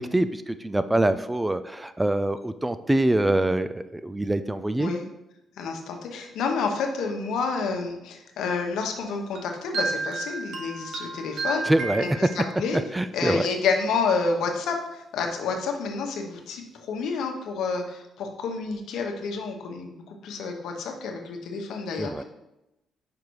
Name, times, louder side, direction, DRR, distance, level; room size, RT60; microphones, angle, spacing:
voice 1, 0.0-4.9 11.7-12.0 12.7-13.4 22.0-22.2, right 1 dB, 10° right, 11 dB, 0.3 m, -25 dB
voice 2, 5.6-11.7 12.0-12.8 13.1-22.2, left 4 dB, 80° left, 3 dB, 1.0 m, -29 dB
sound 1, 9.3-12.8, right 3 dB, 70° right, 1.0 m, -33 dB
5.3 x 4.9 x 4.7 m, 0.91 s
cardioid pair, 90°, 0 cm